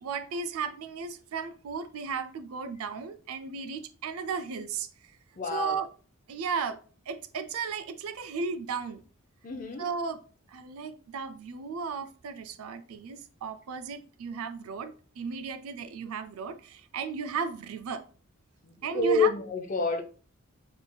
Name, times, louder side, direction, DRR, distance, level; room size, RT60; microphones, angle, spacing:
voice 1, 0.0-5.1 5.5-5.9 6.3-6.8 7.1-9.0 9.8-10.2 10.5-18.0 18.8-19.3, right 5 dB, 80° right, 0.4 m, -35 dB
voice 2, 5.4-5.8 9.4-9.9 18.9-20.0, left 3 dB, 35° left, 0.5 m, -27 dB
3.6 x 3.3 x 2.3 m
head